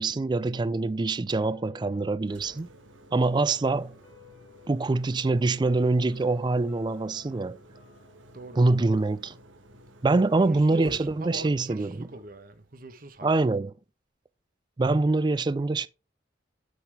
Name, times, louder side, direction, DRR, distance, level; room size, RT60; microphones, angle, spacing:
voice 1, 0.0-2.7 3.1-4.0 4.7-7.6 8.6-9.4 10.0-12.1 13.2-13.7 14.8-15.9, right 3 dB, 25° right, 0.3 m, -25 dB
sound 1, 0.6-9.6 9.9-10.0, left 5 dB, 80° left, 3.9 m, -59 dB
Engine, 2.1-13.1, right 1 dB, 90° right, 1.4 m, -53 dB
voice 2, 10.4-13.3, right 1 dB, 45° right, 1.0 m, -41 dB
8.2 x 5.9 x 3.5 m
head